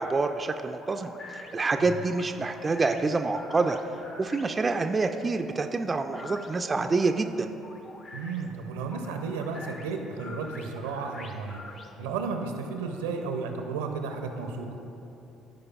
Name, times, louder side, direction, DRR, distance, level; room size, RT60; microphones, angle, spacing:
voice 1, 0.0-3.8 4.2-7.5, right 3 dB, 30° right, 6 dB, 0.3 m, -27 dB
sound 1, 0.8-12.3, left 2 dB, 45° left, 0.7 m, -46 dB
voice 2, 8.1-11.6 12.0-14.7, right 4 dB, 75° right, 5 dB, 0.6 m, -33 dB
14.0 x 4.9 x 2.4 m, 2.9 s
figure-of-eight pair, 50°, 0 cm